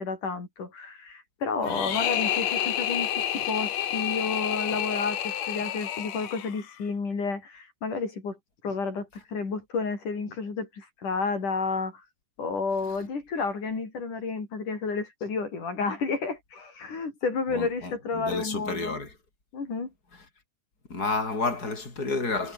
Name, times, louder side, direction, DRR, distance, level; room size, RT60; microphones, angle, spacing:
voice 1, 0.0-8.4 8.6-12.0 12.4-19.0 19.5-19.9, left 4 dB, 80° left, 7.3 m, -31 dB
sound 1, 1.7-6.8, left 11 dB, 65° left, 2.5 m, -29 dB
voice 2, 17.5-19.1 20.9-22.5, left 3 dB, 30° left, 6.6 m, -31 dB
omnidirectional pair, 3.5 m